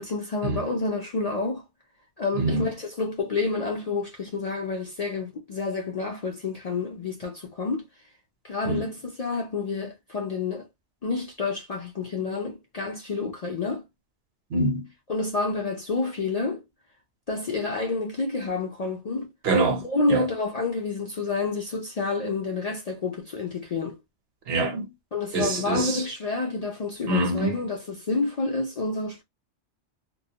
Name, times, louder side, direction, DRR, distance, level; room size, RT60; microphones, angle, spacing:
voice 1, 0.0-1.6 2.2-7.8 8.4-10.7 11.0-13.8 15.1-16.6 17.3-19.3 19.8-24.0 25.1-29.2, left 3 dB, 50° left, 0.5 m, -29 dB
voice 2, 2.4-2.7 8.6-8.9 14.5-14.9 19.4-20.2 24.5-24.9 25.3-26.0 27.1-27.6, right 2 dB, 65° right, 0.9 m, -25 dB
2.2 x 2.1 x 2.7 m
omnidirectional pair, 1.1 m